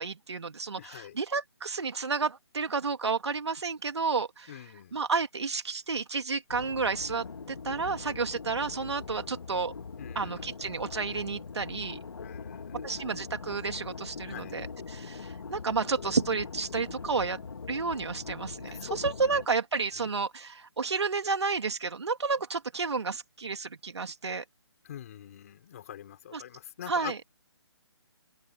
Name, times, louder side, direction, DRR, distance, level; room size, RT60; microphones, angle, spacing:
voice 1, 0.0-4.5 4.9-7.2 7.6-9.7 10.1-12.0 12.8-17.4 17.7-24.4 26.3-26.4 26.9-27.2, right 4 dB, 80° right, 2.8 m, -31 dB
voice 2, 0.8-1.2 4.5-5.0 10.0-10.5 12.2-13.0 14.2-14.6 18.6-19.4 19.9-20.2 24.8-27.2, left 10 dB, 35° left, 5.2 m, -44 dB
sound 1, 6.5-19.5, left 5 dB, 70° left, 2.1 m, -42 dB
open air
hypercardioid pair, 165°, 14 cm